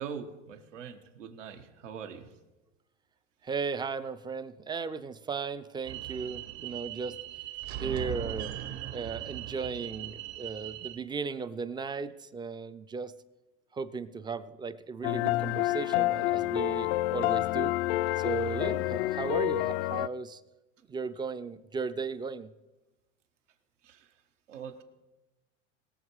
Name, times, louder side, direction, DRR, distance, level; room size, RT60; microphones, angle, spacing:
voice 1, 0.0-2.3 23.8-24.1 24.5-24.8, right 7 dB, 85° right, 6 dB, 1.6 m, -42 dB
voice 2, 3.4-7.2 7.8-8.5 8.9-13.1 13.7-17.8 18.2-20.4 20.9-22.5, right 4 dB, 15° right, 14 dB, 0.4 m, -36 dB
sound 1, 5.8-11.0, right 12 dB, 60° right, 1.4 m, -39 dB
sound 2, 15.0-20.1, left 17 dB, 60° left, 0.5 m, -28 dB
21.0 x 7.2 x 4.8 m, 1.1 s
hypercardioid pair, 115°, 36 cm